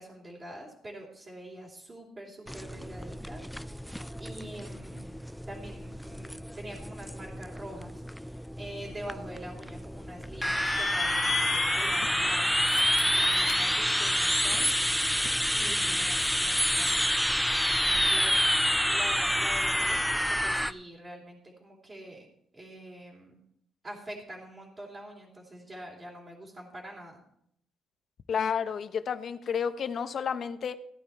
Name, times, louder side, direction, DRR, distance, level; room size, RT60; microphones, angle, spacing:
voice 1, 0.0-3.4 3.7-3.9 4.2-5.2 5.5-12.6 13.0-14.7 15.5-18.6 18.9-22.3 22.5-23.4 23.8-27.2, right 1 dB, 25° right, -4 dB, 3.1 m, -45 dB
sound 1, 2.5-20.7, equal, ahead, 0.4 m, -28 dB
sound 2, 10.5-20.0, left 11 dB, 90° left, 0.8 m, -41 dB
voice 2, 28.3-30.8, left 7 dB, 55° left, 11 dB, 0.9 m, -31 dB
16.0 x 9.0 x 4.3 m, 0.71 s
cardioid pair, 90°, 0 cm